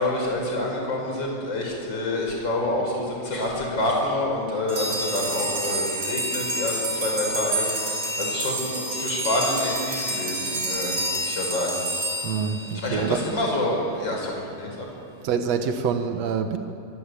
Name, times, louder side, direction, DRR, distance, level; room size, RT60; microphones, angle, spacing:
voice 1, 0.0-11.8 12.7-14.9, left 1 dB, 25° left, 0 dB, 6.1 m, -27 dB
sound 1, 4.7-13.2, right 1 dB, 35° right, 6.7 m, -28 dB
voice 2, 12.2-13.2 15.2-16.6, right 6 dB, 70° right, 6 dB, 1.6 m, -26 dB
25.0 x 24.5 x 8.4 m, 2.6 s
omnidirectional pair, 4.7 m